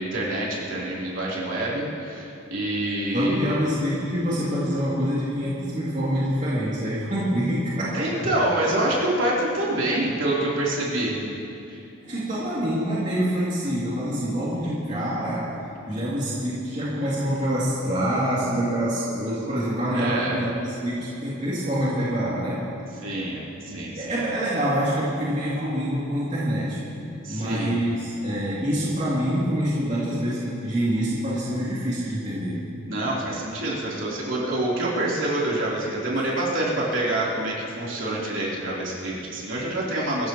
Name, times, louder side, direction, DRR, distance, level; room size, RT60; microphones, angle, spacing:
voice 1, 0.0-3.6 7.9-11.2 11.7-11.8 19.9-20.4 23.0-24.2 27.2-27.8 32.9-40.3, right 1 dB, 65° right, -6 dB, 3.6 m, -26 dB
voice 2, 3.1-8.2 12.0-15.6 15.9-22.7 23.7-26.8 27.3-32.6 36.1-36.2, equal, 35° right, -9 dB, 2.7 m, -26 dB
23.5 x 15.0 x 3.1 m, 2.7 s
head